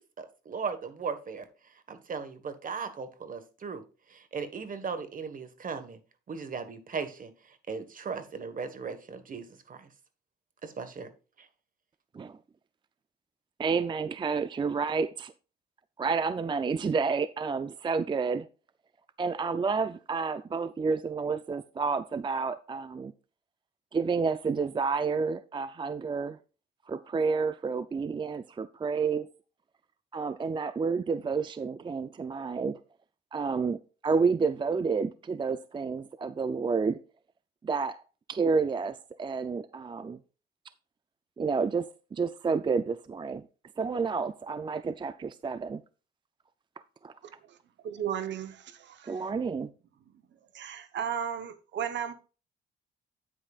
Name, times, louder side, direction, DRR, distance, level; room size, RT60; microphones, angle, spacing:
voice 1, 0.2-1.5 1.9-3.8 4.1-6.0 6.3-7.3 7.7-9.9 10.6-11.1 11.4-11.5, right 5 dB, 45° right, 1.4 m, -37 dB
voice 2, 13.6-15.3 16.0-18.5 19.2-23.1 23.9-26.4 26.9-29.3 30.1-32.8 33.3-37.0 37.6-38.0 38.3-40.2 41.4-41.8 42.1-43.4 43.8-45.8 47.0-47.1 49.1-49.7, right 5 dB, 25° right, 0.4 m, -30 dB
voice 3, 47.8-49.2 50.5-52.1, right 8 dB, 65° right, 1.0 m, -34 dB
9.5 x 8.8 x 2.4 m
cardioid pair, 90°, 20 cm